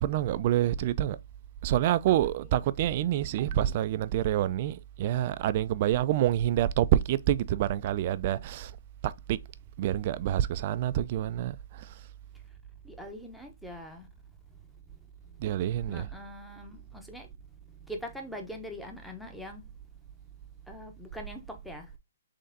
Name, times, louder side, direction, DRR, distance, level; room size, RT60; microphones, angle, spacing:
voice 1, 0.0-1.2 1.6-8.7 9.0-9.4 9.8-11.6 15.4-16.1, right 12 dB, 40° right, 0.3 m, -27 dB
voice 2, 12.8-14.1 15.2-15.4 15.7-17.3 17.7-19.7 20.7-21.9, equal, ahead, 0.8 m, -43 dB
3.9 x 3.4 x 3.8 m
hypercardioid pair, 145°, 0 cm